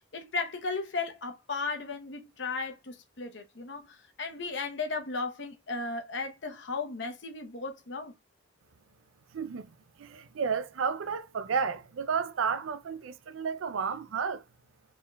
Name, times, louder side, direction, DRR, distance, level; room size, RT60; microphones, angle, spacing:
voice 1, 0.1-3.8 4.2-8.1, left 4 dB, 65° left, 0.8 m, -35 dB
voice 2, 9.3-9.7 10.0-14.4, right 6 dB, 85° right, 0.4 m, -32 dB
4.8 x 3.7 x 2.3 m
head